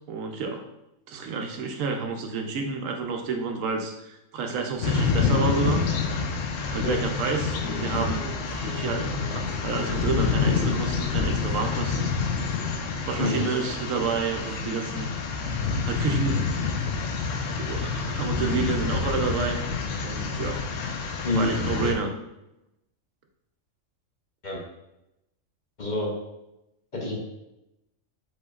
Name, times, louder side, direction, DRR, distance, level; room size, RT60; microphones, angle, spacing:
voice 1, 0.1-0.6 1.1-5.9 6.7-12.1 13.0-15.1 15.8-16.5 17.6-19.6 20.0-20.6 21.2-22.1, right 4 dB, 90° right, 4 dB, 1.0 m, -29 dB
sound 1, 4.8-21.9, left 5 dB, 80° left, 0.9 m, -27 dB
sound 2, 7.5-14.7, right 3 dB, 50° right, 0.5 m, -43 dB
voice 2, 13.2-13.5 21.2-21.5 21.8-21.9 24.4-24.6 25.8-26.1 26.9-27.2, left 2 dB, 45° left, -2 dB, 0.8 m, -27 dB
4.9 x 4.2 x 2.4 m, 0.88 s
omnidirectional pair, 1.3 m